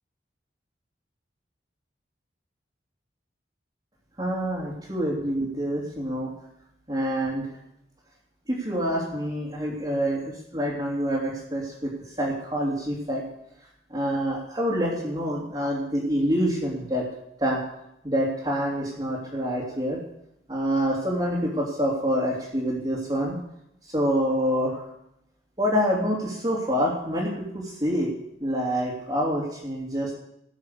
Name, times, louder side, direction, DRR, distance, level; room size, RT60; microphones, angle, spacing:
voice 1, 4.2-6.3 6.9-7.5 8.5-11.9 12.2-13.2 13.9-17.1 17.4-17.6 18.0-20.0 20.5-23.4 23.9-24.8 25.6-28.1 28.4-30.1, equal, 25° right, -7 dB, 3.0 m, -26 dB
16.0 x 7.3 x 6.8 m, 0.79 s
head